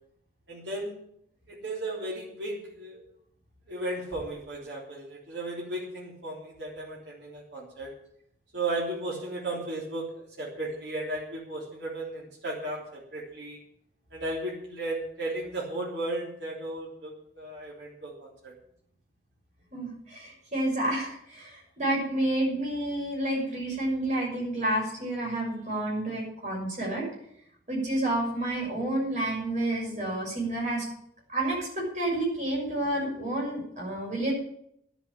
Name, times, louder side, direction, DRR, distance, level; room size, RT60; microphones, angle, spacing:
voice 1, 0.5-1.0 1.5-3.0 3.7-7.9 8.5-13.6 14.1-18.5, right 2 dB, 85° right, -4 dB, 3.4 m, -35 dB
voice 2, 19.7-27.1 27.7-30.8 31.3-34.3, right 1 dB, 40° right, -2 dB, 6.3 m, -29 dB
11.0 x 8.2 x 9.0 m, 0.72 s
head